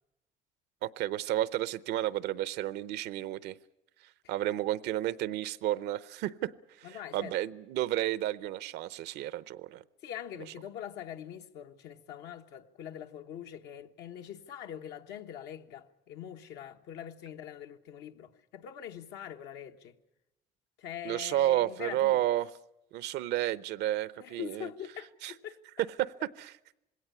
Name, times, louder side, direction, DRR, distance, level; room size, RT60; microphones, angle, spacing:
voice 1, 0.8-3.6 4.3-9.8 21.0-22.5 22.9-24.7 25.2-25.3 26.0-26.5, right 14 dB, 85° right, 0.7 m, -31 dB
voice 2, 6.8-7.4 10.0-20.0 20.8-22.2 24.2-25.6, left 10 dB, 85° left, 1.2 m, -43 dB
20.5 x 17.5 x 9.7 m
cardioid pair, 110°, 17 cm